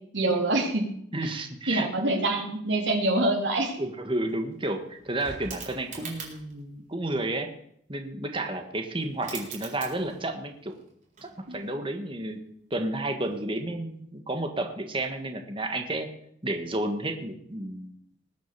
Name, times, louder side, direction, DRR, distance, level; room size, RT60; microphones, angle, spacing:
voice 1, 0.1-0.9 1.7-3.7 11.5-11.6, right 2 dB, 75° right, 1 dB, 3.4 m, -25 dB
voice 2, 1.1-1.9 3.8-7.5 7.9-10.8 11.2-12.4 12.7-16.1 16.4-17.9, right 1 dB, 30° right, 5 dB, 1.6 m, -31 dB
sound 1, 3.8-3.9 4.1-6.6 8.7-8.8 9.0-10.4 10.7-11.8 13.2-13.4, right 5 dB, 45° right, 3.9 m, -43 dB
20.0 x 7.7 x 6.9 m, 0.69 s
head